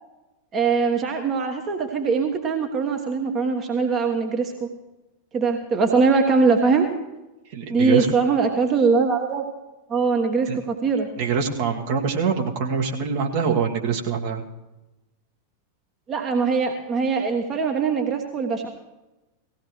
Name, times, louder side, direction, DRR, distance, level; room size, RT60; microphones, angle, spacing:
voice 1, 0.5-4.7 5.3-6.9 7.7-9.5 9.9-11.1 16.1-18.7, right 4 dB, 30° right, 4 dB, 1.3 m, -22 dB
voice 2, 7.5-8.1 10.5-10.6 11.2-14.4, right 6 dB, 50° right, 2 dB, 1.6 m, -24 dB
18.5 x 16.0 x 3.2 m, 1.0 s
figure-of-eight pair, 90°, 0 cm